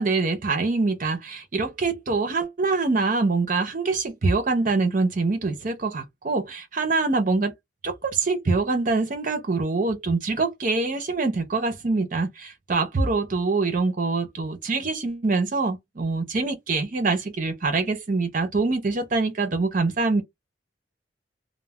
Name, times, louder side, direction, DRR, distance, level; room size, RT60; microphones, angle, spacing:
voice 1, 0.0-7.5 7.8-20.2, right 3 dB, 50° right, 0.7 m, -24 dB
2.5 x 2.1 x 3.2 m
head